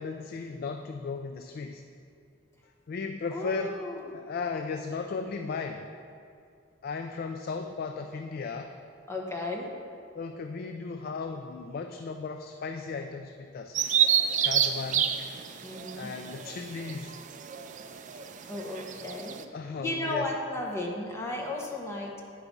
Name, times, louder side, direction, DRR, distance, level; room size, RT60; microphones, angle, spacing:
voice 1, 0.0-1.8 2.9-3.8 4.1-5.9 6.8-8.8 10.1-13.8 14.4-15.1 16.0-17.2 19.5-20.3, left 4 dB, 50° left, 6 dB, 0.3 m, -36 dB
voice 2, 3.3-4.0 9.1-9.8 15.6-16.1 18.1-18.2 18.5-19.5 19.8-22.2, left 2 dB, 15° left, -1 dB, 1.0 m, -34 dB
Bird vocalization bird call bird song, 13.7-19.4, right 9 dB, 40° right, 0.4 m, -29 dB
9.8 x 4.7 x 5.3 m, 2.4 s
head